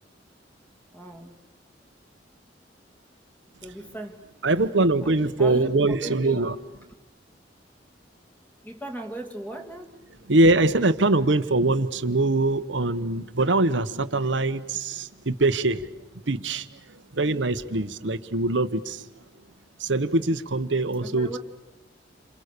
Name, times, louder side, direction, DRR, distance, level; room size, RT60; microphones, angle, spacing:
voice 1, 0.9-1.4 3.6-4.2 5.0-5.1 5.4-6.5 8.6-9.9 21.0-21.4, right 1 dB, 10° left, 4 dB, 2.8 m, -37 dB
voice 2, 4.4-6.5 10.3-15.9 16.3-19.1 19.8-21.4, right 2 dB, 85° right, 11 dB, 1.2 m, -23 dB
29.0 x 27.0 x 6.8 m, 0.95 s
head